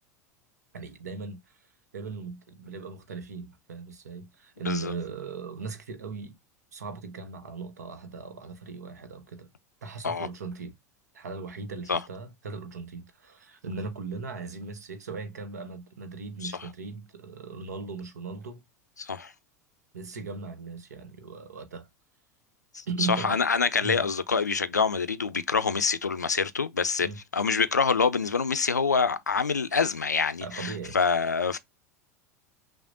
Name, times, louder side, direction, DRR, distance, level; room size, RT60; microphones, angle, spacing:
voice 1, 0.7-1.6 1.9-6.4 6.7-9.5 9.8-10.7 11.1-18.6 19.9-21.9 22.9-23.5 23.8-24.1 27.0-27.2 30.4-31.0, right 4 dB, 70° right, 0.8 m, -38 dB
voice 2, 19.0-19.3 22.7-22.8 23.2-27.1 27.3-31.6, left 5 dB, 85° left, 0.4 m, -26 dB
5.8 x 2.1 x 2.4 m
figure-of-eight pair, 80°, 9 cm